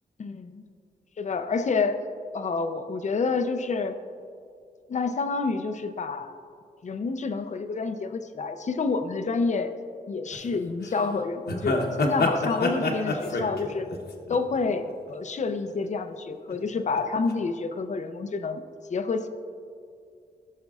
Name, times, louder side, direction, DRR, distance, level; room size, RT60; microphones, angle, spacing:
voice 1, 0.2-0.5 1.2-2.0 2.3-4.0 4.9-6.3 6.8-9.7 10.1-13.9 14.3-18.6 18.9-19.3, left 4 dB, 45° left, 8 dB, 0.5 m, -28 dB
sound 1, 10.3-10.6 10.8-11.0 11.5-15.1 15.4-15.8 16.5-17.0 17.3-17.4, left 2 dB, 65° left, 1.0 m, -28 dB
15.5 x 6.5 x 2.4 m, 2.3 s
wide cardioid pair, 155°, 18 cm